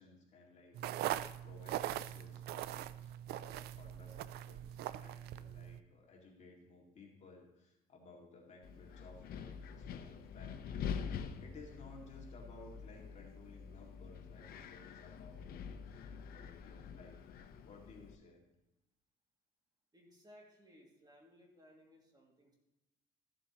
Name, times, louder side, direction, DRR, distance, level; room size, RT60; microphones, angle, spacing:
voice 1, 0.0-10.9 11.4-17.2 17.6-18.4, left 3 dB, 45° left, -1 dB, 2.2 m, -58 dB
sound 1, 0.7-5.8, right 13 dB, 75° right, 0.4 m, -41 dB
Wind, 8.6-18.2, left 7 dB, 65° left, 0.8 m, -46 dB
voice 2, 19.9-22.5, equal, 25° right, -1 dB, 2.4 m, -62 dB
14.0 x 7.6 x 3.0 m, 0.93 s
cardioid pair, 110°, 17 cm